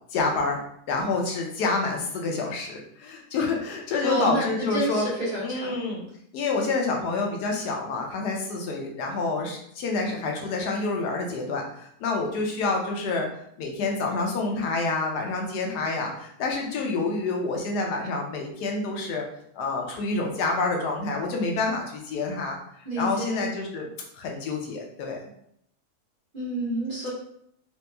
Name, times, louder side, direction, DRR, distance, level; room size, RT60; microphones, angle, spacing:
voice 1, 0.1-0.6 0.9-5.1 5.4-6.0 6.3-13.3 13.6-19.2 19.6-22.6 23.0-23.9 24.1-25.2, left 3 dB, 85° left, 1 dB, 1.3 m, -28 dB
voice 2, 4.0-5.8 22.8-23.4 26.3-27.1, right 1 dB, 35° right, -7 dB, 1.3 m, -29 dB
3.4 x 3.0 x 2.2 m, 0.70 s
omnidirectional pair, 1.7 m